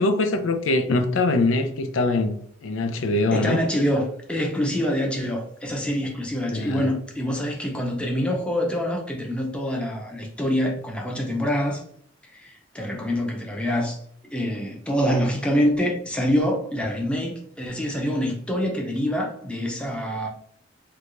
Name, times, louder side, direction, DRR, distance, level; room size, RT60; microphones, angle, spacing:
voice 1, 0.0-2.4 2.6-3.7 6.5-6.8 12.9-13.0, left 2 dB, 90° left, 0.4 m, -23 dB
voice 2, 3.3-11.8 12.3-14.0 14.3-20.3, equal, 5° left, 0.6 m, -25 dB
4.6 x 2.3 x 2.5 m
head